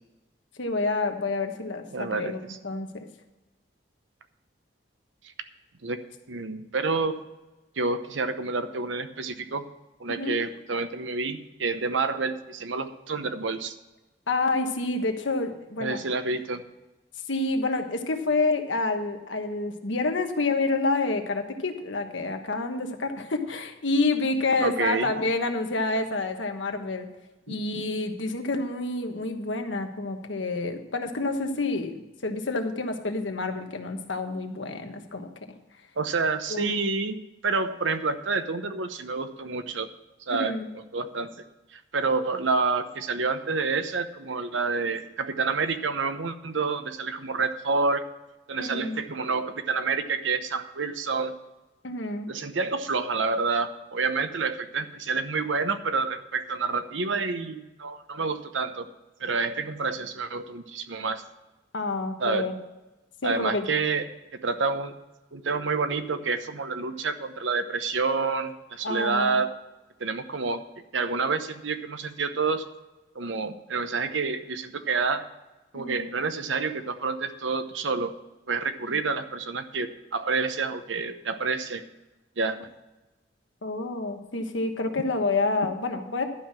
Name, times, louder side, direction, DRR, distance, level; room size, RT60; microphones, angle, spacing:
voice 1, 0.6-3.1 10.1-10.4 14.3-16.0 17.3-27.1 27.5-35.3 36.5-36.8 40.3-40.7 48.6-49.0 51.8-52.3 61.7-62.5 63.2-63.7 68.8-69.4 75.7-76.1 78.9-79.0 83.6-86.2, left 3 dB, 80° left, 5 dB, 1.3 m, -28 dB
voice 2, 1.9-2.6 5.8-6.0 6.3-7.2 7.8-9.6 10.0-13.7 15.8-16.6 24.6-25.1 27.5-27.6 36.0-37.2 37.4-39.9 40.3-40.6 40.9-41.3 41.7-48.0 48.5-51.3 52.3-58.9 59.2-61.2 62.2-62.5 63.2-64.0 64.4-64.9 65.3-69.5 70.0-70.6 70.9-72.6 73.1-75.2 75.7-78.1 78.5-81.8 82.4-82.6, right 4 dB, 85° right, 9 dB, 0.9 m, -28 dB
12.0 x 5.7 x 7.4 m, 1.1 s
head